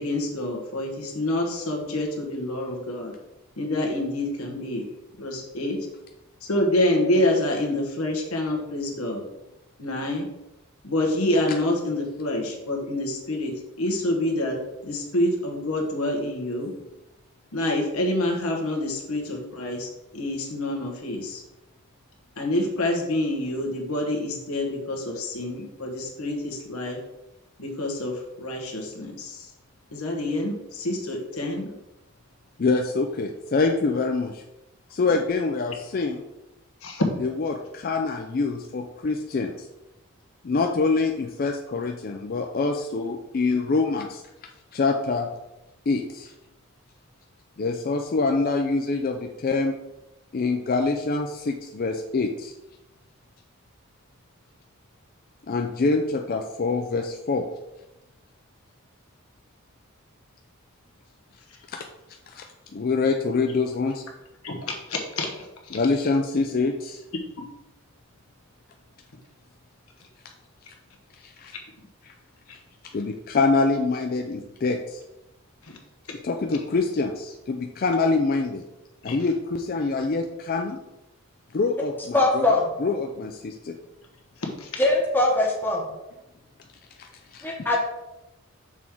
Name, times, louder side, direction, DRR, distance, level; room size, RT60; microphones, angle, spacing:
voice 1, 0.0-3.1 3.6-4.8 5.2-5.9 6.4-9.2 9.8-10.2 10.8-16.7 17.5-21.4 22.4-27.0 27.6-29.5 29.9-31.7 35.1-35.2 36.8-37.0 64.4-65.8 75.6-75.7 79.1-79.2 84.6-84.7, left 1 dB, 80° left, 1 dB, 1.2 m, -27 dB
voice 2, 32.6-34.4 34.9-36.2 37.2-39.7 40.4-44.2 44.7-45.3 45.9-46.3 47.6-49.8 50.3-52.5 55.5-57.5 61.7-61.8 62.3-62.4 62.7-64.0 65.7-67.0 71.2-71.5 72.0-72.1 72.9-75.0 76.2-78.6 79.0-80.8 81.5-83.8 87.0-87.7, left 3 dB, 40° left, 3 dB, 0.4 m, -25 dB
voice 3, 82.1-82.7 84.8-85.9 87.4-87.8, left 2 dB, 10° left, -2 dB, 1.0 m, -21 dB
6.1 x 3.7 x 4.5 m, 0.94 s
head